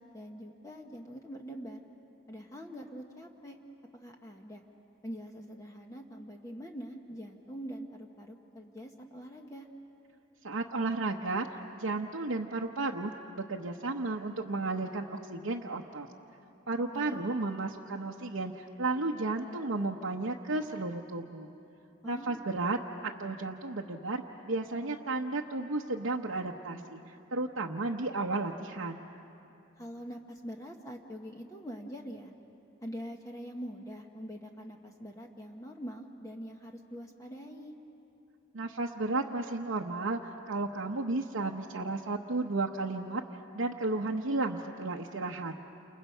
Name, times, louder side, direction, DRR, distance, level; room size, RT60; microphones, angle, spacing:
voice 1, 0.0-1.8 2.3-3.6 3.9-4.6 5.0-9.7 16.9-17.2 22.0-22.4 29.8-32.3 32.8-37.7, equal, 15° left, 2 dB, 1.0 m, -44 dB
voice 2, 10.4-11.5 11.7-16.1 16.7-21.5 22.0-29.0 38.5-43.2 43.5-45.5, right 2 dB, 85° right, -2 dB, 1.0 m, -33 dB
29.5 x 28.0 x 5.6 m, 2.8 s
head